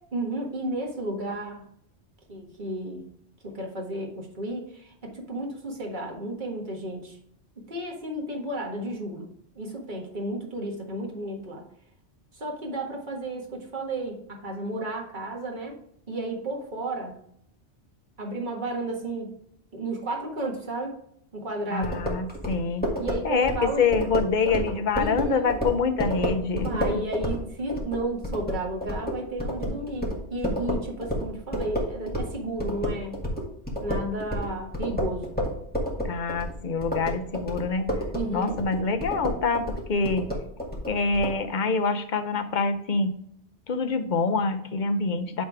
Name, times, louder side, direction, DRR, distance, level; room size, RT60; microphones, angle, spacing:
voice 1, 0.1-1.6 2.3-3.1 3.4-7.2 7.6-9.3 9.6-11.6 12.3-15.8 16.1-17.2 18.2-19.3 19.7-20.9 21.3-22.0 23.0-23.8 24.9-25.5 26.5-33.2 33.8-35.3 38.1-38.5, right 2 dB, 45° right, 0 dB, 1.7 m, -33 dB
voice 2, 21.7-22.9 23.2-27.0 36.0-38.0 38.3-40.3 40.9-43.2 43.7-45.4, left 4 dB, 50° left, 9 dB, 0.8 m, -26 dB
sound 1, 21.8-32.3 32.6-41.3, equal, 10° left, 1.7 m, -30 dB
9.8 x 3.6 x 4.7 m, 0.69 s
omnidirectional pair, 1.2 m